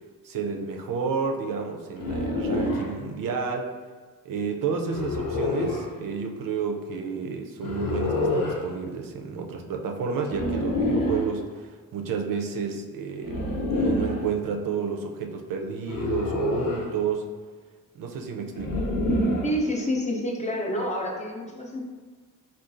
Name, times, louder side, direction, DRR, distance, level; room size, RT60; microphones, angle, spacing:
voice 1, 0.2-3.7 4.2-17.3 18.0-18.7, right 5 dB, 70° right, 3 dB, 0.5 m, -31 dB
sound 1, 2.0-2.9 4.9-5.9 7.6-8.6 10.3-11.3 13.2-14.2 15.9-16.9 18.6-19.6, left 1 dB, 70° left, 0.7 m, -26 dB
voice 2, 19.4-21.8, equal, 20° left, -1 dB, 0.5 m, -28 dB
3.7 x 2.3 x 2.5 m, 1.5 s
cardioid pair, 110°, 34 cm